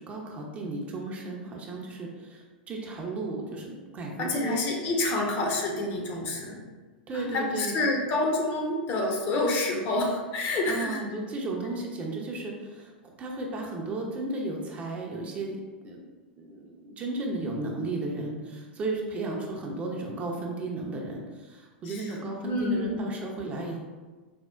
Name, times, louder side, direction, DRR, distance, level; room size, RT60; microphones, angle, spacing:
voice 1, 0.0-4.6 7.1-7.7 10.7-16.0 16.4-23.8, right 2 dB, 25° right, -1 dB, 0.5 m, -34 dB
voice 2, 4.2-6.6 7.1-11.0 21.9-22.1 22.4-23.0, left 2 dB, 40° left, 0 dB, 0.6 m, -28 dB
4.3 x 2.1 x 2.3 m, 1.3 s
hypercardioid pair, 100°, 5 cm